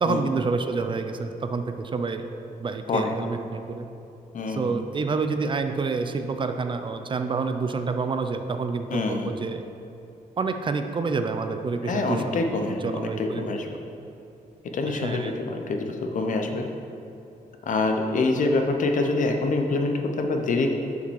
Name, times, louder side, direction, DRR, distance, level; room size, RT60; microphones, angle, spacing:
voice 1, 0.0-2.3 2.6-3.9 4.6-9.6 10.4-13.5 14.9-15.3, right 4 dB, 35° right, 7 dB, 0.4 m, -28 dB
voice 2, 4.3-4.8 8.9-9.3 11.8-13.7 14.7-16.6 17.7-20.7, left 3 dB, 60° left, 4 dB, 0.7 m, -26 dB
6.8 x 5.0 x 6.3 m, 2.8 s
wide cardioid pair, 135°, 15 cm